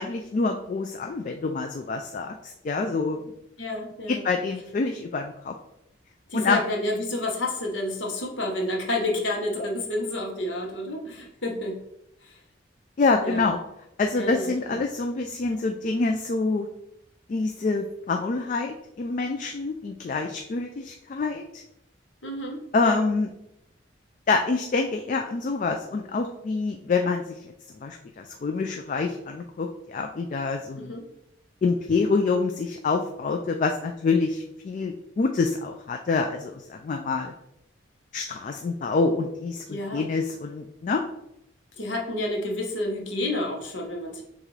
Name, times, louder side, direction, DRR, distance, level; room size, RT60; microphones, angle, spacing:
voice 1, 0.0-3.2 4.1-5.5 6.3-6.6 13.0-13.6 14.0-16.7 17.3-21.6 22.7-23.3 24.3-27.4 27.8-31.0 31.6-37.3 38.1-41.0, left 4 dB, 40° left, 4 dB, 0.3 m, -26 dB
voice 2, 3.6-4.2 6.3-11.8 12.2-12.4 13.2-13.5 14.1-14.8 22.2-23.0 30.8-31.0 39.7-40.0 41.8-44.2, left 1 dB, 75° left, 0 dB, 1.0 m, -30 dB
6.4 x 2.4 x 3.2 m, 0.80 s
head